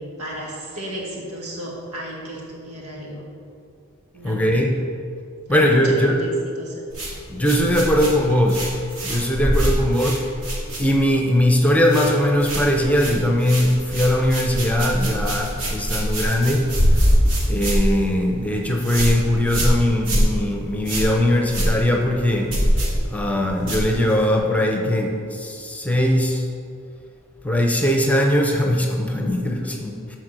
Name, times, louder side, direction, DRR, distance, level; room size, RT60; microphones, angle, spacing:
voice 1, 0.2-3.2 4.1-4.6 5.5-6.3 6.6-6.8 7.8-8.4, right 1 dB, 90° right, -2 dB, 2.3 m, -34 dB
voice 2, 4.2-4.8 5.5-6.2 7.3-8.6 9.0-10.2 10.8-16.7 17.5-22.5 23.0-26.4 27.4-30.2, left 1 dB, 5° left, 1 dB, 0.9 m, -20 dB
sound 1, 6.9-11.3 11.5-12.1 12.4-24.4, equal, 60° right, 2.5 m, -24 dB
13.0 x 4.6 x 6.2 m, 2.4 s
head